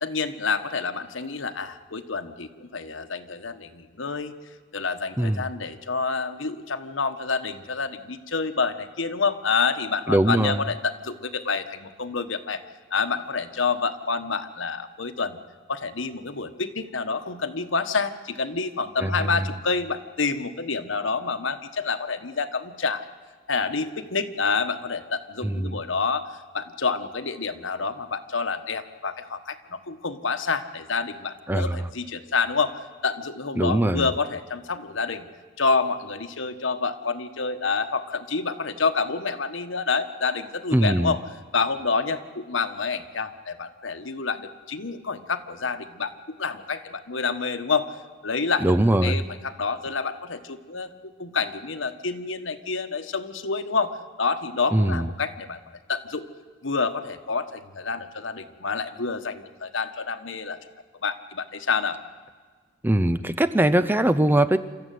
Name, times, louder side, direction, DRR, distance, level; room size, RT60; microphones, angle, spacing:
voice 1, 0.0-4.3 4.7-12.6 12.9-15.4 15.7-23.0 23.5-35.3 35.6-41.2 41.5-47.9 48.2-48.7 49.0-55.6 55.9-56.3 56.6-60.6 61.0-62.0, left 4 dB, 80° left, 9 dB, 1.3 m, -28 dB
voice 2, 10.1-10.6 19.0-19.4 25.4-25.8 31.5-31.9 33.6-34.1 40.7-41.1 48.6-49.2 54.7-55.1 62.8-64.6, right 1 dB, 10° right, 12 dB, 0.6 m, -21 dB
27.5 x 14.0 x 9.4 m, 1.5 s
head